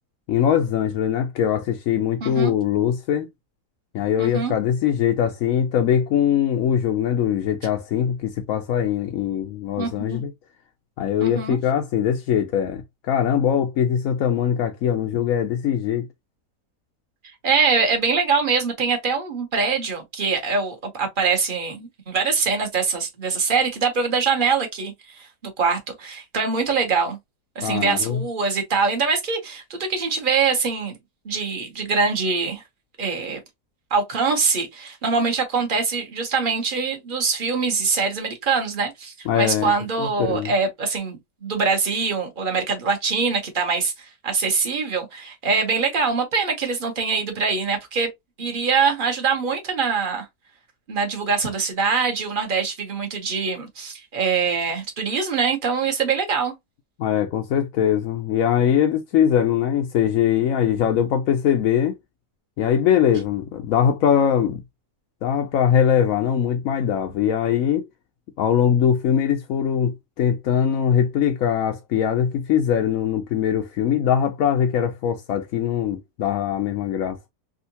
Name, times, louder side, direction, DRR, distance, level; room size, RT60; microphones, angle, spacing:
voice 1, 0.3-3.3 3.9-10.3 11.0-16.1 27.6-28.2 39.3-39.7 40.0-40.5 57.0-62.0 62.6-64.6 65.2-67.9 68.4-77.2, left 9 dB, 65° left, 0.9 m, -21 dB
voice 2, 2.2-2.5 4.2-4.5 9.8-10.2 11.2-11.6 17.4-25.3 25.6-27.2 27.5-31.0 31.2-32.6 33.0-33.4 33.9-48.1 48.4-50.3 50.9-56.5, right 5 dB, 35° right, 1.0 m, -23 dB
3.6 x 2.5 x 2.6 m
omnidirectional pair, 1.8 m